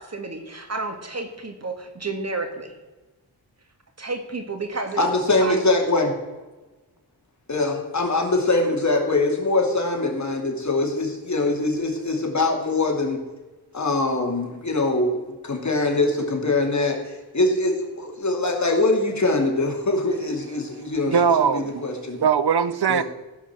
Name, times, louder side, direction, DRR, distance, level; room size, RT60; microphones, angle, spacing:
voice 1, 0.0-2.7 4.0-5.0 5.4-5.6, right 3 dB, 40° right, 6 dB, 2.0 m, -31 dB
voice 2, 5.0-6.1 7.5-13.2 13.7-22.2 22.9-23.0, left 2 dB, 45° left, 1 dB, 2.8 m, -23 dB
voice 3, 21.1-21.8 22.2-23.0, right 7 dB, 70° right, 15 dB, 0.8 m, -20 dB
16.0 x 5.7 x 7.3 m, 1.2 s
wide cardioid pair, 75°, 40 cm